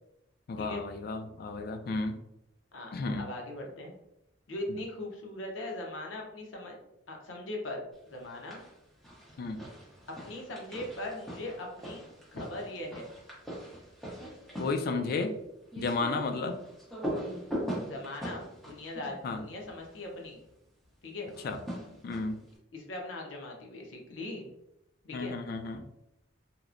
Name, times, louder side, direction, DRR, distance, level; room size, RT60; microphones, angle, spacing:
voice 1, 0.5-2.2 2.9-3.3 4.7-4.8 9.4-9.6 14.6-15.3 15.8-16.5 19.2-19.4 21.4-21.6 22.0-22.4 25.1-25.8, left 3 dB, 50° left, 6 dB, 0.3 m, -32 dB
voice 2, 2.7-3.9 4.5-6.8 7.1-8.6 10.2-12.0 12.3-13.1 17.9-20.4 21.0-21.3 22.7-24.5 25.0-25.4, left 1 dB, 85° left, 1 dB, 0.6 m, -40 dB
sound 1, 8.2-8.7 9.0-20.0 21.3-22.5, equal, ahead, 0.7 m, -41 dB
2.9 x 2.1 x 2.4 m, 0.85 s
head